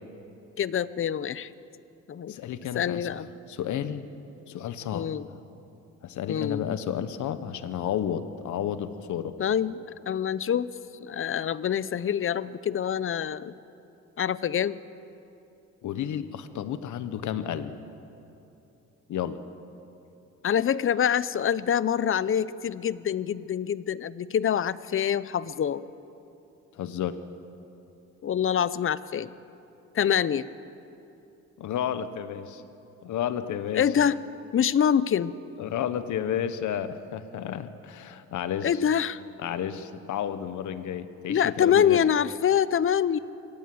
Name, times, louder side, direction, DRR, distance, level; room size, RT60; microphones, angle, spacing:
voice 1, 0.6-1.5 2.1-2.4 2.7-3.3 4.9-5.3 6.3-6.7 9.4-10.7 11.0-13.5 14.2-14.8 20.4-25.8 28.2-29.3 29.9-30.5 33.7-34.2 34.5-35.3 38.6-39.2 41.3-43.2, left 8 dB, 45° left, 18 dB, 0.7 m, -25 dB
voice 2, 2.3-4.1 4.5-5.1 6.0-9.4 15.8-17.7 19.1-19.4 26.7-27.2 31.6-32.6 33.0-34.0 35.6-38.8 39.4-42.0, left 9 dB, 75° left, 12 dB, 1.3 m, -32 dB
24.5 x 17.5 x 7.8 m, 2.9 s
cardioid pair, 90°, 30 cm